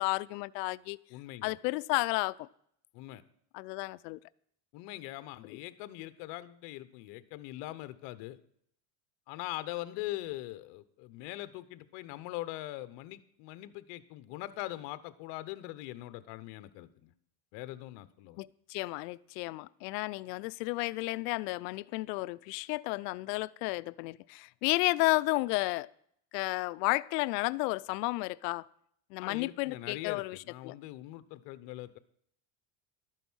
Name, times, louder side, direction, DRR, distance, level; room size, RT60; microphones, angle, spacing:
voice 1, 0.0-1.0 1.4-2.5 3.5-4.2 18.4-25.9 26.3-28.6 29.1-30.4 30.6-30.7, left 22 dB, 85° left, 0.6 m, -32 dB
voice 2, 1.1-1.6 2.9-3.2 4.7-8.4 9.3-17.1 17.5-18.4 29.2-32.0, left 16 dB, 60° left, 1.0 m, -42 dB
12.5 x 9.1 x 6.3 m
cardioid pair, 155°, 47 cm